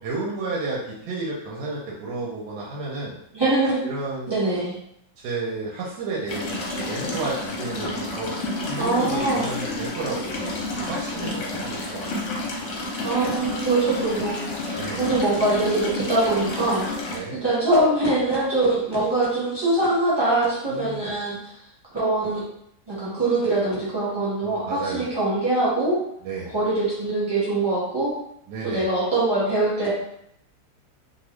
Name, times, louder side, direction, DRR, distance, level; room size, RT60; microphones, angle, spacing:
voice 1, 0.0-3.1 3.8-4.4 5.2-8.4 8.7-12.3 14.8-15.1 17.1-17.4 20.7-21.1 24.4-25.1 26.2-26.5 28.5-28.9, right 3 dB, 85° right, -4 dB, 1.3 m, -32 dB
voice 2, 3.3-3.8 4.3-4.7 8.8-9.5 13.0-16.8 17.3-21.4 21.9-22.4 22.9-26.0 26.5-28.1 28.6-29.9, right 2 dB, 20° right, -8 dB, 1.0 m, -23 dB
sound 1, 6.3-17.2, left 2 dB, 60° left, 0.9 m, -30 dB
2.9 x 2.4 x 3.0 m, 0.73 s
omnidirectional pair, 1.8 m